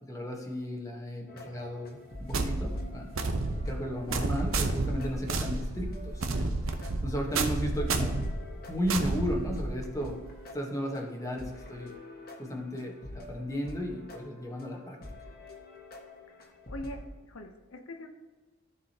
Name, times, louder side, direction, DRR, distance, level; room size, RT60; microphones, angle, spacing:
voice 1, 0.0-3.1 3.5-6.5 7.0-8.1 8.7-10.2 10.5-11.9 12.4-15.0, equal, 15° left, 0 dB, 1.3 m, -35 dB
sound 1, 1.3-17.1, left 1 dB, 50° left, 1.5 m, -47 dB
sound 2, 2.3-10.0, right 3 dB, 70° right, 0.8 m, -31 dB
voice 2, 16.4-17.0 17.3-18.1, left 1 dB, 80° left, 5 dB, 0.8 m, -42 dB
14.5 x 4.9 x 2.9 m, 1.3 s
head